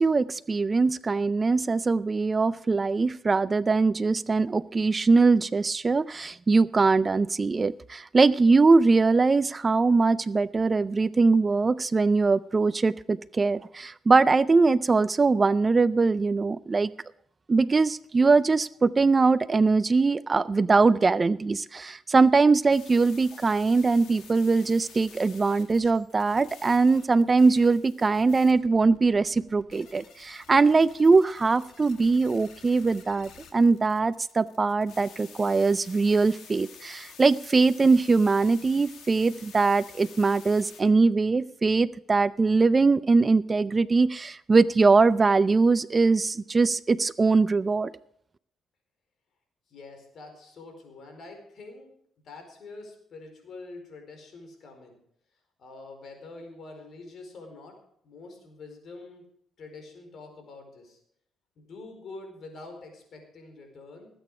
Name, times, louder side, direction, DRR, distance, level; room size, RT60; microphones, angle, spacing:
voice 1, 0.0-16.9 17.5-47.9, right 4 dB, 30° right, 17 dB, 0.4 m, -22 dB
sound 1, 22.7-40.8, left 6 dB, 75° left, 2.4 m, -50 dB
voice 2, 49.7-51.9 52.2-55.0 55.6-57.7 58.0-59.2 59.6-61.0 61.6-64.1, left 3 dB, 60° left, 4 dB, 4.6 m, -45 dB
19.0 x 8.9 x 4.9 m, 0.70 s
cardioid pair, 90°, 0 cm